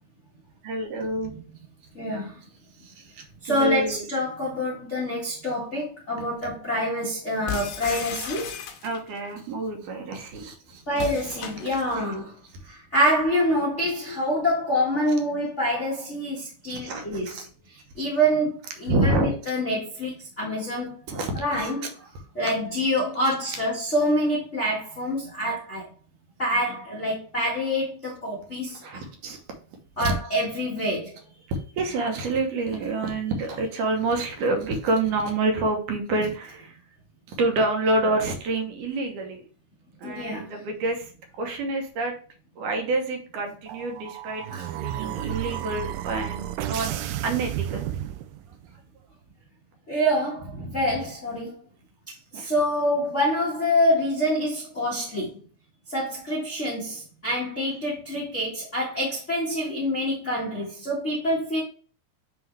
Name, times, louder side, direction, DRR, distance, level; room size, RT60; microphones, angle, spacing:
voice 1, 0.6-1.3 2.8-4.1 8.8-11.1 16.7-17.5 18.8-19.3 21.1-21.7 23.2-23.3 28.8-29.4 30.0-30.1 31.5-36.8 37.3-39.4 40.0-41.1 41.4-42.1 42.6-44.5 44.7-47.9 50.6-51.0 52.3-52.5, right 2 dB, 65° right, 2.4 m, -28 dB
voice 2, 1.9-2.4 3.4-8.5 10.9-12.3 12.7-17.4 17.7-21.0 21.4-21.9 22.3-25.9 26.4-28.8 30.0-31.2 40.0-40.5 44.5-44.6 49.9-51.5 52.3-55.3 55.9-61.6, equal, 60° left, 0.7 m, -26 dB
sound 1, 7.5-9.2 10.9-12.1, left 8 dB, 85° left, 2.8 m, -35 dB
sound 2, 43.7-48.7, right 12 dB, 80° right, 2.2 m, -32 dB
9.4 x 3.5 x 3.3 m
omnidirectional pair, 4.3 m